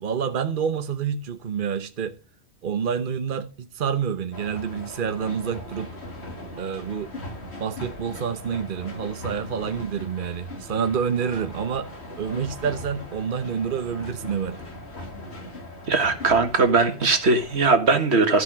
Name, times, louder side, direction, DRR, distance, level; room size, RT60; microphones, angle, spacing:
voice 1, 0.0-2.2 2.6-5.9 6.6-7.1 7.6-11.9 12.2-14.6, right 7 dB, 55° right, 1.1 m, -28 dB
sound 1, 4.3-17.7, left 1 dB, 80° left, 2.3 m, -39 dB
voice 2, 15.9-18.4, right 3 dB, 85° right, 1.9 m, -20 dB
13.5 x 5.8 x 6.1 m
omnidirectional pair, 1.1 m